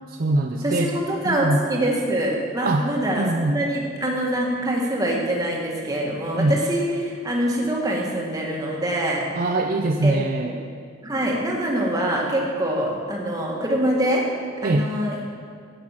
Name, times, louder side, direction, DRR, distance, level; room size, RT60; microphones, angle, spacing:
voice 1, 0.1-0.9 1.2-1.6 2.6-2.9 3.2-3.6 6.4-6.5 9.3-10.5 14.6-14.9, right 2 dB, 45° right, 3 dB, 0.5 m, -22 dB
voice 2, 0.6-9.2 10.0-10.2 10.4-10.5 11.0-14.2 14.6-15.3, right 1 dB, 20° right, -2 dB, 1.7 m, -24 dB
11.5 x 8.3 x 5.8 m, 2.1 s
head